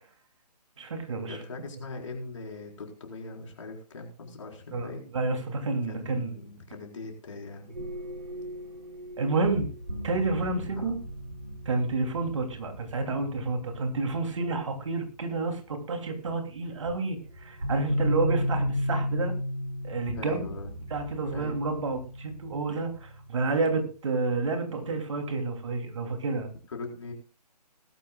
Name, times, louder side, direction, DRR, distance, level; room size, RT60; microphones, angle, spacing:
voice 1, 0.8-1.4 4.7-6.3 9.2-9.7 10.0-10.9 11.6-19.3 19.8-20.5 20.9-26.5, right 3 dB, 45° right, 5 dB, 2.8 m, -30 dB
voice 2, 1.3-5.1 5.9-7.9 10.8-10.9 18.1-18.4 20.1-20.9 21.3-21.5 26.7-27.1, left 3 dB, 45° left, 1 dB, 4.2 m, -41 dB
sound 1, 7.7-14.6 16.3-16.4 16.9-23.9, equal, 80° right, 3.6 m, -35 dB
20.0 x 12.5 x 2.3 m, 0.35 s
figure-of-eight pair, 140°, 21 cm